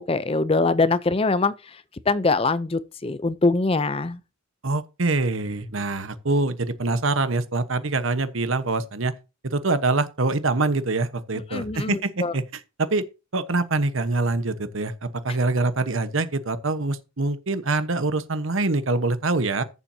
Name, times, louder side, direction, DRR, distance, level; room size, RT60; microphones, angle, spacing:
voice 1, 0.0-1.5 2.1-4.2 11.5-12.3, left 3 dB, 25° left, 0.5 m, -23 dB
voice 2, 4.6-9.1 9.4-13.0 13.3-19.6, right 3 dB, 65° right, 1.1 m, -25 dB
14.0 x 7.3 x 2.8 m
head